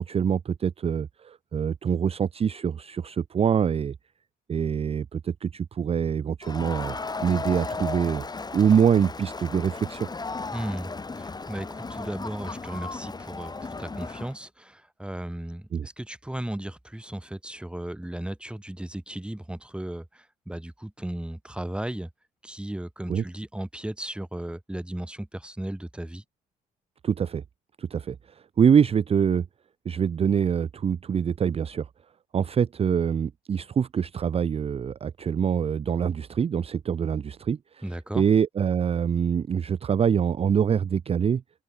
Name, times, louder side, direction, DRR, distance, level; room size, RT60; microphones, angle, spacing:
voice 1, 0.0-3.9 4.5-7.0 7.2-8.2 8.5-10.1 15.7-15.9 23.1-23.2 27.0-27.4 27.8-28.2 28.6-29.5 29.9-31.9 32.3-37.8 38.1-41.4, right 7 dB, 30° right, 0.5 m, -24 dB
Crowd, 6.4-14.4, left 3 dB, 20° left, 1.4 m, -35 dB
voice 2, 10.5-22.1 22.4-26.2 37.8-38.2, right 1 dB, 5° right, 1.7 m, -35 dB
hypercardioid pair, 60°, 19 cm